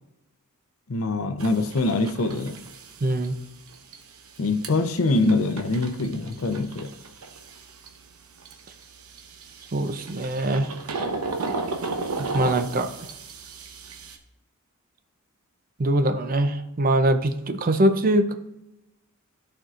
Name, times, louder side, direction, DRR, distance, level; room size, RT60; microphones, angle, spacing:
voice 1, 0.9-2.6 4.4-6.9, left 2 dB, 70° left, 0.6 m, -24 dB
sound 1, 1.4-14.2, right 3 dB, 80° right, 0.9 m, -35 dB
voice 2, 3.0-3.4 9.7-10.7 12.2-12.9 15.8-18.3, right 1 dB, 40° right, 0.5 m, -22 dB
13.5 x 4.5 x 2.5 m
head